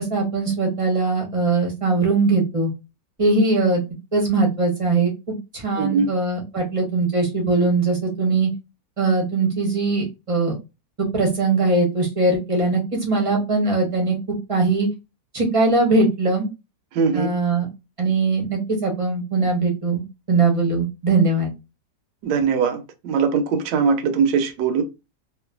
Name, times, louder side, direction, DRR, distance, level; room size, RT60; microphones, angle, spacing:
voice 1, 0.0-2.7 3.2-3.8 4.1-8.5 9.0-10.6 11.0-14.2 14.5-14.9 15.3-16.5 17.1-17.7 18.0-21.5, right 3 dB, 35° right, 0.5 m, -21 dB
voice 2, 5.8-6.1 16.9-17.3 22.2-24.8, right 5 dB, 80° right, 1.2 m, -21 dB
3.0 x 2.2 x 2.3 m
omnidirectional pair, 1.9 m